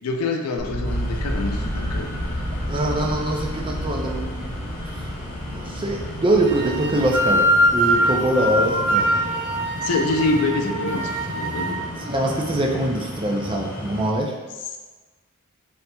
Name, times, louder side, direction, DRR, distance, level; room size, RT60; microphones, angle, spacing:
voice 1, 0.0-2.1 9.8-11.9, left 3 dB, 90° left, 3 dB, 0.5 m, -25 dB
sound 1, 0.6-12.4, equal, 35° left, 0.9 m, -32 dB
sound 2, 0.8-14.1, equal, 10° left, 1.2 m, -35 dB
voice 2, 2.7-4.4 4.8-5.1 5.5-9.2 12.1-14.3, right 1 dB, 25° right, 0 dB, 0.4 m, -23 dB
sound 3, 6.5-11.8, right 1 dB, 75° right, 0.7 m, -22 dB
4.3 x 3.9 x 2.2 m, 1.3 s
head